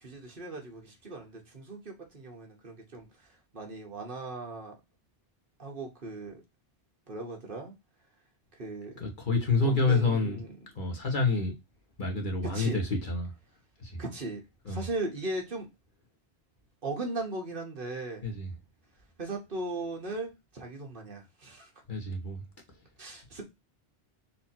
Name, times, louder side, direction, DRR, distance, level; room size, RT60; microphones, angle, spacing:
voice 1, 0.0-3.1 3.5-4.7 5.6-6.4 7.1-7.7 8.6-9.0 9.6-10.5 12.5-12.8 14.0-14.4 14.7-15.7 16.8-18.3 19.2-21.7 23.0-23.4, right 2 dB, 50° right, 1.5 m, -38 dB
voice 2, 9.0-10.4 10.7-11.5 12.0-13.3 13.8-14.0 14.6-14.8 18.2-18.5 21.9-22.4, left 3 dB, 50° left, 1.3 m, -28 dB
4.3 x 2.8 x 4.2 m
omnidirectional pair, 1.1 m